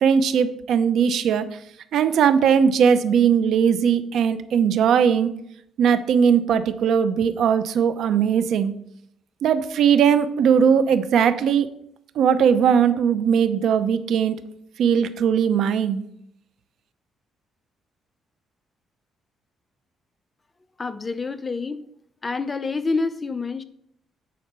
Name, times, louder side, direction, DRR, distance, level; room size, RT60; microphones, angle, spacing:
voice 1, 0.0-1.5 1.9-5.3 5.8-8.7 9.4-11.7 12.2-14.4 14.8-16.0, right 7 dB, 75° right, 12 dB, 0.8 m, -19 dB
voice 2, 20.8-21.8 22.2-23.6, left 3 dB, 25° left, 10 dB, 0.8 m, -27 dB
9.6 x 4.3 x 6.9 m, 0.72 s
cardioid pair, 90°, 0 cm